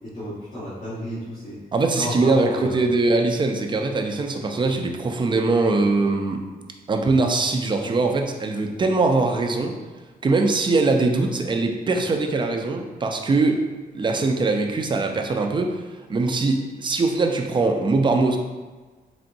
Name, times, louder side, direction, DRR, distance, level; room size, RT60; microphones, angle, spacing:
voice 1, 0.0-1.6 1.9-2.8, equal, 60° left, -12 dB, 1.3 m, -32 dB
voice 2, 1.7-6.4 6.9-9.7 10.2-13.6 13.9-15.8 16.1-18.4, right 3 dB, 30° right, 3 dB, 0.4 m, -22 dB
4.0 x 3.4 x 2.6 m, 1.3 s
wide cardioid pair, 150°, 16 cm